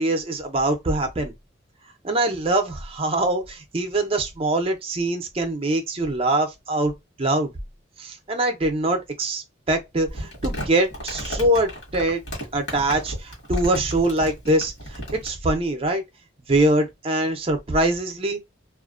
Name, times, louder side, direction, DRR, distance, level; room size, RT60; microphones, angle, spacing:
voice 1, 0.0-1.3 2.0-6.9 7.2-7.5 8.0-12.2 12.5-16.0 16.5-18.4, right 1 dB, 30° right, 0.5 m, -23 dB
Crumpling crinkling, 10.1-15.3, equal, 60° left, 1.3 m, -34 dB
2.4 x 2.2 x 2.4 m
head